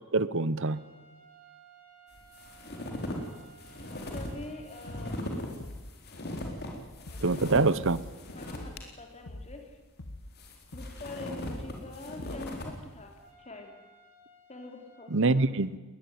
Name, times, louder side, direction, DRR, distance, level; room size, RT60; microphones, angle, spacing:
voice 1, 0.1-0.8 7.2-8.0 15.1-15.7, right 3 dB, 60° right, 17 dB, 0.9 m, -25 dB
sound 1, 0.6-5.2 13.2-15.1, right 4 dB, 25° right, 5.9 m, -57 dB
sound 2, 2.1-8.8 9.2-9.3 10.1-12.8, left 1 dB, 45° left, 4.1 m, -39 dB
voice 2, 3.9-5.2 6.8-7.2 7.7-7.9 8.3-9.8 10.7-13.7 14.5-15.5, left 3 dB, 30° left, 4 dB, 3.1 m, -45 dB
sound 3, 4.1-4.5 4.9-5.2 5.6-6.0 6.3-6.7 7.1-7.4 7.8-8.2 8.5-8.9 9.3-9.6 10.0-10.4 10.7-11.1 11.5-11.8 12.2-12.6, left 1 dB, 80° left, 1.4 m, -44 dB
20.5 x 20.0 x 9.5 m, 1.2 s
head